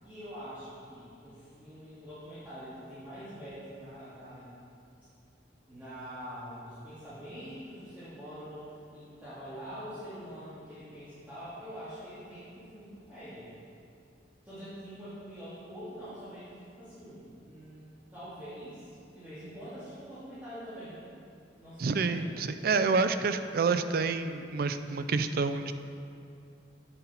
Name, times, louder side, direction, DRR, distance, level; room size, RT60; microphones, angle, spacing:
voice 1, 0.0-4.5 5.7-13.5 14.4-16.5 16.8-17.8 18.1-20.9 21.6-22.3, equal, 10° right, -15 dB, 2.3 m, -45 dB
voice 2, 21.8-25.7, right 4 dB, 55° right, 10 dB, 0.4 m, -28 dB
8.3 x 7.7 x 4.3 m, 2.5 s
head